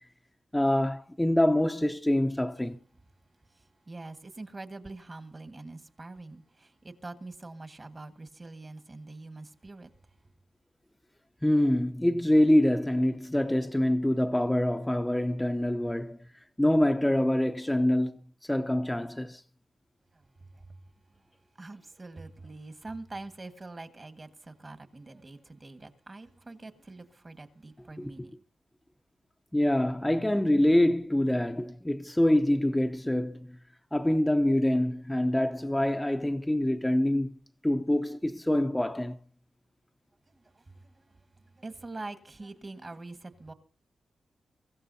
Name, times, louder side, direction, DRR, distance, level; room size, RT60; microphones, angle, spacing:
voice 1, 0.5-2.8 11.4-16.2 16.6-19.4 28.0-28.1 29.5-33.6 33.9-37.4 37.6-39.2, left 1 dB, 10° left, 0.7 m, -25 dB
voice 2, 3.9-9.9 20.5-20.6 21.6-28.3 40.5-40.9 41.5-43.5, right 2 dB, 35° right, 1.6 m, -44 dB
23.5 x 15.0 x 2.7 m
cardioid pair, 85°, 0 cm